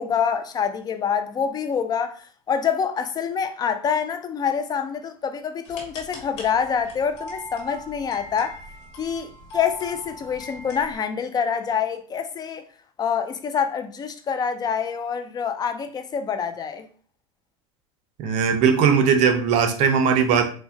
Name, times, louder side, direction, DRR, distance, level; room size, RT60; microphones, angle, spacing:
voice 1, 0.0-8.6 9.0-12.6 13.0-16.8, left 7 dB, 30° left, 0.4 m, -26 dB
sound 1, 5.6-11.0, left 1 dB, 90° left, 1.4 m, -40 dB
voice 2, 18.2-20.4, right 6 dB, 55° right, 0.7 m, -19 dB
4.5 x 2.1 x 2.7 m
supercardioid pair, 110°, 14 cm